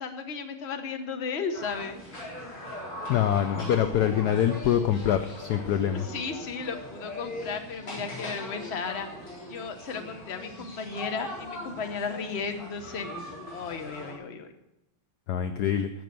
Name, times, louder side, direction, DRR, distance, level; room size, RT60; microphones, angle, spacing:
voice 1, 0.0-2.0 5.9-9.1 9.5-13.1 13.5-14.5, left 5 dB, 40° left, 7 dB, 1.0 m, -34 dB
sound 1, 1.5-14.1, left 1 dB, 90° left, 5.1 m, -40 dB
voice 2, 3.1-6.1 15.3-15.9, left 10 dB, 70° left, 9 dB, 0.9 m, -25 dB
15.5 x 6.2 x 6.8 m, 0.87 s
omnidirectional pair, 2.3 m